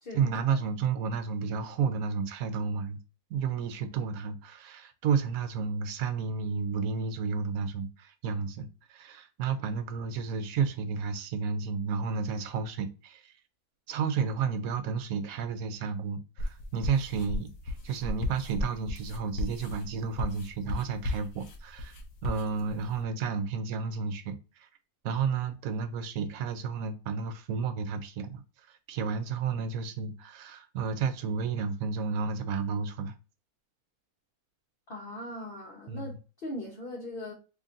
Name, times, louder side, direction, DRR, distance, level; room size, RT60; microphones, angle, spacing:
voice 1, 0.1-3.0 3.3-13.3 13.9-22.0 22.2-24.7 25.0-28.4 28.7-33.1 35.9-36.1, right 5 dB, 75° right, 1.0 m, -32 dB
sound 1, 16.4-23.0, left 2 dB, 65° left, 1.1 m, -35 dB
voice 2, 34.9-37.3, left 1 dB, 45° left, 0.9 m, -40 dB
3.9 x 2.9 x 2.5 m
omnidirectional pair, 1.6 m